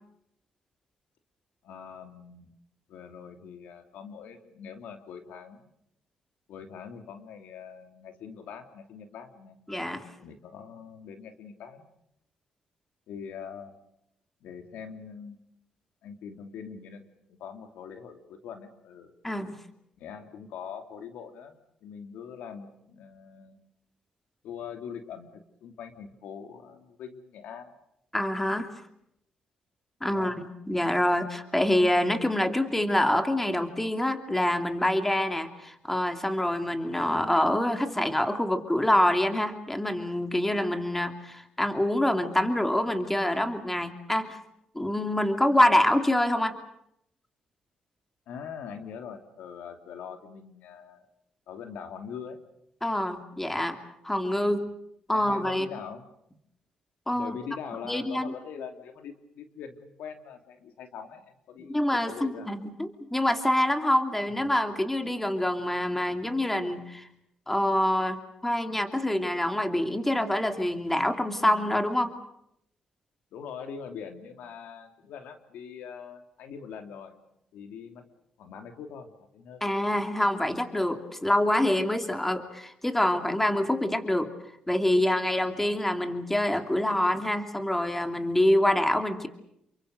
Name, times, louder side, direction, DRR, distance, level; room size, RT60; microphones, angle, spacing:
voice 1, 1.6-2.5 2.9-5.7 6.5-9.6 10.2-11.8 13.1-13.8 14.4-15.4 16.0-17.0 17.4-19.1 20.0-23.6 24.4-27.7 30.1-30.3 48.3-51.0 51.5-52.4 54.5-54.7 55.1-56.1 57.1-62.5 64.4-64.5 73.3-77.2 77.5-78.0 78.4-79.6, left 7 dB, 85° left, 6 dB, 2.9 m, -43 dB
voice 2, 9.7-10.0 19.2-19.6 28.1-28.7 30.0-44.4 44.7-46.5 52.8-53.8 54.0-54.6 55.1-55.8 57.1-57.3 57.8-58.4 61.7-67.1 67.5-72.1 79.6-84.3 84.7-89.3, left 1 dB, 10° left, 7 dB, 2.8 m, -26 dB
28.5 x 24.0 x 6.6 m, 0.77 s
cardioid pair, 95°, 3 cm